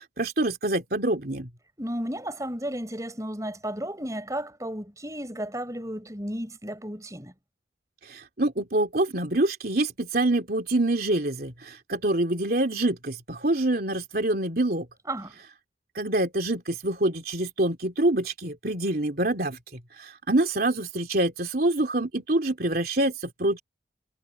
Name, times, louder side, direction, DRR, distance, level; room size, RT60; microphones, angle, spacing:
voice 1, 0.0-1.5 8.1-14.8 15.9-19.6 20.0-23.6, right 1 dB, 55° right, 3.3 m, -26 dB
voice 2, 1.8-7.3 15.0-15.3, right 1 dB, 20° right, 5.0 m, -33 dB
head